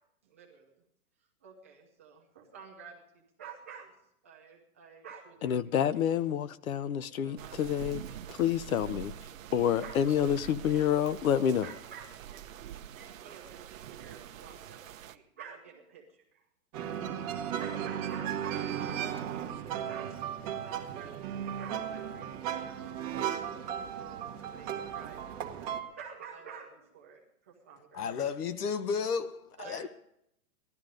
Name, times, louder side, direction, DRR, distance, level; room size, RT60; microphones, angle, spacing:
voice 1, 0.2-0.8 1.4-6.2 6.7-7.6 9.8-10.0 11.4-12.4 13.0-16.4 17.4-18.7 19.0-20.1 20.4-28.1 29.6-29.9, right 7 dB, 10° right, 0.4 m, -50 dB
voice 2, 5.4-8.0 8.3-9.1 9.5-11.7, left 9 dB, 65° left, 0.8 m, -28 dB
sound 1, 7.4-15.2, right 10 dB, 60° right, 0.9 m, -45 dB
sound 2, 16.7-25.8, right 9 dB, 25° right, 1.2 m, -36 dB
voice 3, 27.9-29.9, left 6 dB, 85° left, 1.3 m, -33 dB
17.5 x 12.0 x 5.2 m
hypercardioid pair, 165°, 45 cm